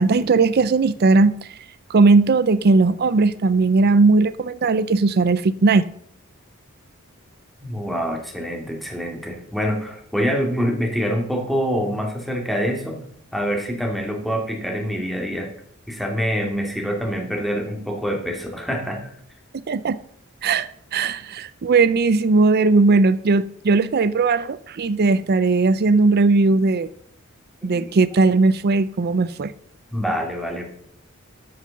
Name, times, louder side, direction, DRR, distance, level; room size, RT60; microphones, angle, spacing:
voice 1, 0.0-1.3 1.9-5.9 19.7-20.0 20.4-26.9 27.6-29.5, right 3 dB, 50° right, 0.5 m, -18 dB
voice 2, 7.6-13.0 13.3-15.5 15.9-19.1 29.9-30.7, equal, ahead, 2.5 m, -25 dB
13.0 x 6.7 x 6.5 m
head